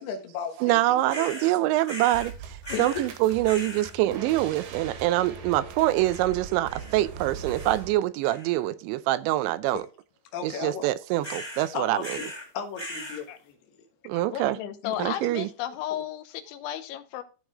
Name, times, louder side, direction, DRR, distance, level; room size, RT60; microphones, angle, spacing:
voice 1, 0.0-0.8 1.1-1.3 2.7-3.1 10.3-10.9 11.7-12.1 12.5-13.6 14.8-15.3 15.9-16.0, left 6 dB, 70° left, 3.1 m, -35 dB
voice 2, 0.6-9.8 10.4-12.2 14.1-14.6 15.0-15.5, right 15 dB, 85° right, 2.8 m, -25 dB
sound 1, 1.1-1.5 1.9-2.3 2.6-3.1 3.4-3.9 5.9-6.3 6.7-7.1 7.5-7.9 8.2-8.7 11.2-11.7 12.0-12.5 12.7-13.2, equal, 10° left, 1.3 m, -39 dB
sound 2, 2.1-8.0, right 6 dB, 65° right, 2.9 m, -41 dB
voice 3, 14.1-17.2, left 12 dB, 90° left, 3.3 m, -34 dB
14.0 x 4.7 x 3.5 m
omnidirectional pair, 5.2 m